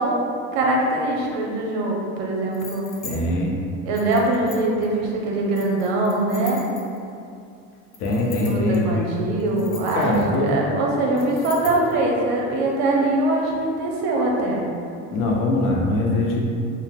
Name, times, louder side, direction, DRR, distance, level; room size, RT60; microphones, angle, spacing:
voice 1, 0.0-2.9 3.8-6.6 8.2-14.6, right 2 dB, 70° right, -1 dB, 0.7 m, -23 dB
sound 1, 2.5-3.2 3.9-4.8 5.5-7.1 7.9-8.8 9.4-10.5 11.2-11.9, left 4 dB, 25° left, 0.4 m, -40 dB
voice 2, 3.0-3.6 8.0-9.0 9.9-10.5 15.1-16.4, left 2 dB, 65° left, -1 dB, 0.6 m, -22 dB
2.8 x 2.0 x 3.4 m, 2.4 s
supercardioid pair, 105°, 36 cm